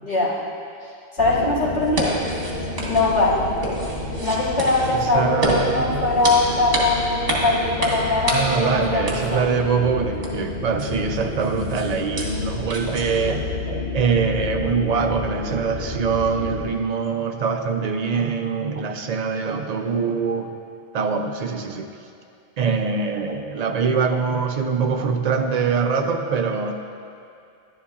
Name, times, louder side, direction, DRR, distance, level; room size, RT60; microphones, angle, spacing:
voice 1, 0.0-0.4 0.8-2.2 2.9-3.5 4.2-9.4, left 2 dB, 90° left, -9 dB, 2.4 m, -21 dB
sound 1, 1.2-16.6, left 3 dB, 60° left, 1.3 m, -30 dB
sound 2, 1.8-13.4, right 1 dB, 65° right, 1.7 m, -30 dB
voice 2, 4.9-6.1 8.3-20.5 20.9-21.9 22.6-26.7, right 5 dB, 50° right, 5 dB, 0.6 m, -23 dB
11.0 x 11.0 x 2.4 m, 2.4 s
omnidirectional pair, 1.0 m